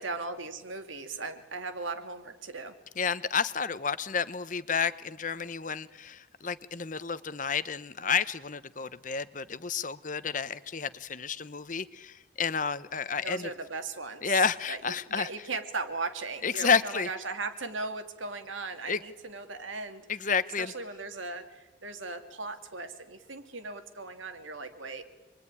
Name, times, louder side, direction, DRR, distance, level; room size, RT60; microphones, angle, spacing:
voice 1, 0.0-2.8 13.2-14.4 14.7-20.1 20.6-25.0, right 3 dB, 85° right, 7 dB, 2.5 m, -38 dB
voice 2, 3.0-13.5 14.2-15.3 16.4-17.1 18.9-19.0 20.1-20.7, left 6 dB, 40° left, 14 dB, 1.0 m, -30 dB
27.5 x 22.0 x 9.8 m, 1.2 s
head